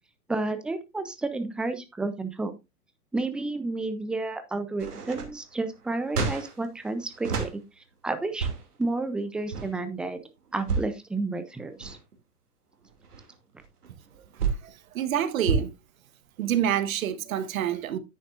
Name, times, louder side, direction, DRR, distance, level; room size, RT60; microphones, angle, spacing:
voice 1, 0.3-2.5 3.1-7.6 8.0-8.5 8.8-10.2 10.5-12.0, right 2 dB, ahead, 0.4 m, -31 dB
sound 1, 4.8-7.5 8.2-8.8 9.4-9.7 10.5-11.0 11.6-12.1 12.7-14.7 15.4-15.6, right 5 dB, 75° right, 2.7 m, -30 dB
voice 2, 14.6-15.7 16.4-18.0, right 10 dB, 60° right, 1.2 m, -27 dB
10.0 x 8.5 x 2.5 m
hypercardioid pair, 110°, 46 cm